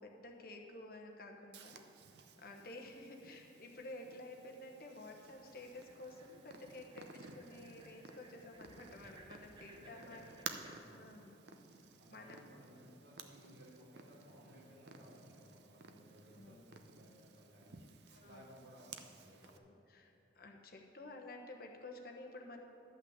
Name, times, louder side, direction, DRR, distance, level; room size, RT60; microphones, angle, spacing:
voice 1, 0.0-1.8 2.4-10.4 10.9-11.4 12.1-12.5 16.3-16.6 18.1-18.5 19.4-22.6, left 2 dB, 50° left, 2 dB, 1.1 m, -52 dB
Purr, 1.5-19.6, right 5 dB, 65° right, 0.7 m, -55 dB
sound 1, 5.2-10.8, right 2 dB, 25° right, 0.7 m, -62 dB
voice 2, 9.7-10.7 12.0-17.8 18.2-19.5, equal, 80° right, -5 dB, 3.1 m, -59 dB
12.0 x 5.8 x 8.0 m, 2.9 s
head